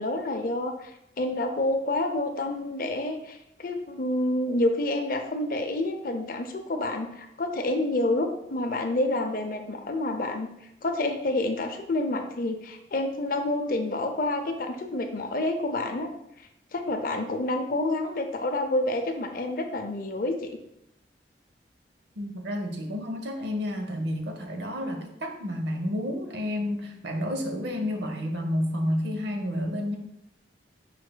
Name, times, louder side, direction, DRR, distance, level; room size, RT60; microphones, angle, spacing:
voice 1, 0.0-10.5 10.8-16.1 16.7-20.6, left 2 dB, 50° left, 5 dB, 0.5 m, -28 dB
voice 2, 22.2-30.0, left 1 dB, 70° right, 4 dB, 0.7 m, -30 dB
4.9 x 4.8 x 2.2 m, 0.80 s
head